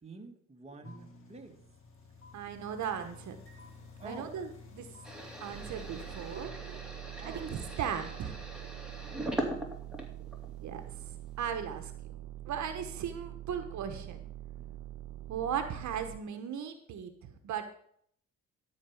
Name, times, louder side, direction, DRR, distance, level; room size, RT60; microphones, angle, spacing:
voice 1, 0.0-1.6 4.0-4.4 7.2-7.5 12.4-12.5 14.6-14.7, right 3 dB, 20° right, 3 dB, 1.6 m, -50 dB
sound 1, 0.8-6.5, left 3 dB, 45° left, 2.2 m, -52 dB
voice 2, 2.3-3.4 4.0-4.9 5.4-6.8 7.1-8.4 10.6-11.9 12.5-14.2 15.3-17.7, right 8 dB, 70° right, 8 dB, 1.1 m, -37 dB
sound 2, 5.0-10.6 11.0-11.7, right 1 dB, 5° right, 2.5 m, -40 dB
sound 3, 5.5-16.2, right 14 dB, 85° right, 0.5 m, -45 dB
12.5 x 4.5 x 7.1 m, 0.65 s
cardioid pair, 90°, 30 cm